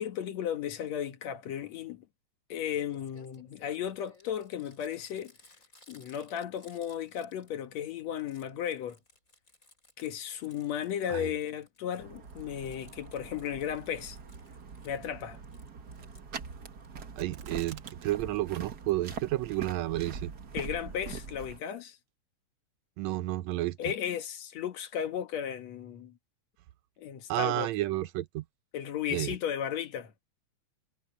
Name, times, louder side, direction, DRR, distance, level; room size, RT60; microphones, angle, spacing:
voice 1, 0.0-2.1 2.5-5.3 5.9-9.0 10.0-14.2 14.8-15.4 20.5-22.0 23.8-26.1 27.0-27.7 28.7-30.1, left 9 dB, 65° left, 2.4 m, -35 dB
Crumpling crinkling, 2.6-2.7 2.9-7.8 8.1-11.1 11.4-15.0 15.3-16.9 17.3-17.7 18.8-19.2 19.7-19.8 20.0-20.1 20.3-20.4, left 2 dB, 25° left, 6.1 m, -61 dB
sound 1, 12.0-21.6, right 5 dB, 45° right, 1.6 m, -43 dB
sound 2, 17.2-18.1 18.4-18.5 19.0-19.5 20.0-20.1, right 8 dB, 60° right, 1.4 m, -47 dB
voice 2, 17.2-20.3 23.0-23.8 27.3-28.4 29.1-29.4, right 16 dB, 75° right, 1.8 m, -31 dB
omnidirectional pair, 3.4 m